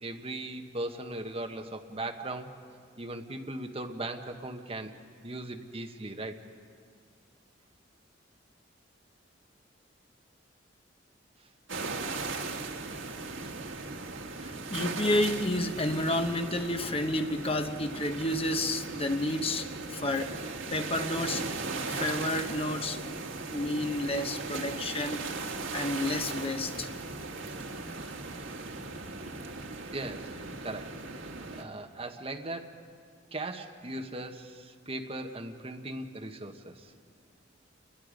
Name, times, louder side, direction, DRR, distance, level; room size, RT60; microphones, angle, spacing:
voice 1, 0.0-2.5 3.0-4.9 5.2-6.4 14.4-14.5 29.9-30.3 30.6-31.0 31.5-32.9 33.3-36.9, right 2 dB, 30° right, 1.2 m, -38 dB
sound 1, 11.7-31.6, right 3 dB, 85° right, 1.6 m, -38 dB
voice 2, 14.4-21.5 21.9-23.0 23.5-26.9, left 1 dB, 30° left, 1.0 m, -31 dB
28.5 x 21.5 x 5.2 m
head